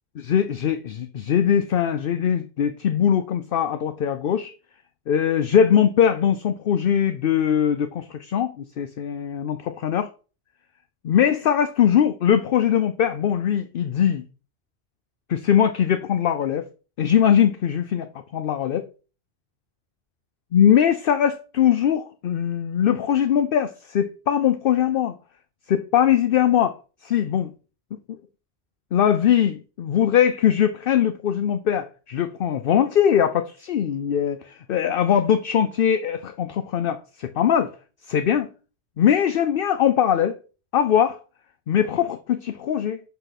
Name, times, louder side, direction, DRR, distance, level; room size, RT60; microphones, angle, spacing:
voice 1, 0.2-4.5 5.1-10.1 11.0-14.3 15.3-16.6 17.0-18.9 20.5-25.1 25.7-26.8 27.0-27.5 28.1-28.2 28.9-37.7 38.1-38.5 39.0-40.4 40.7-41.2 41.7-43.0, left 9 dB, 60° left, 0.7 m, -21 dB
5.7 x 5.5 x 5.8 m
omnidirectional pair, 1.1 m